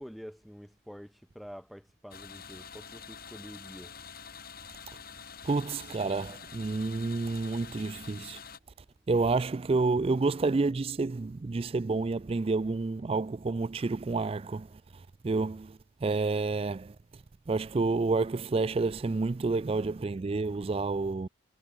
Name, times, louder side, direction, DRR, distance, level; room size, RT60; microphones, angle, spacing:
voice 1, 0.0-3.9, equal, ahead, 4.2 m, -47 dB
sound 1, 2.1-8.6, left 6 dB, 45° left, 4.6 m, -47 dB
voice 2, 5.4-8.4 9.1-14.7 15.2-16.9 17.5-21.3, right 3 dB, 25° right, 0.3 m, -29 dB
head